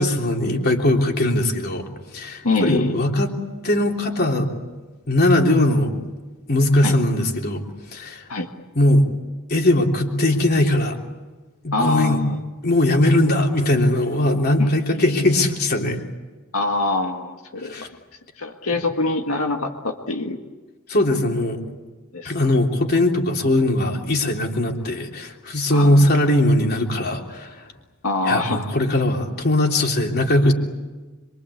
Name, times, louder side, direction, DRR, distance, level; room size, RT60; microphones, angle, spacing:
voice 1, 0.0-1.9 2.1-3.3 3.6-4.5 5.1-6.0 6.5-7.6 7.9-8.3 8.8-9.1 9.5-11.0 11.6-12.2 12.6-16.0 17.6-17.9 20.9-21.6 22.2-27.7 28.3-30.5, left 1 dB, 45° left, 2 dB, 3.5 m, -20 dB
voice 2, 2.4-3.0 6.8-7.0 8.3-8.5 11.7-12.4 14.6-15.3 16.5-17.9 18.4-20.4 22.1-22.3 25.7-26.1 28.0-28.7, left 2 dB, 90° left, 3 dB, 1.9 m, -24 dB
27.0 x 24.5 x 8.5 m, 1.2 s
head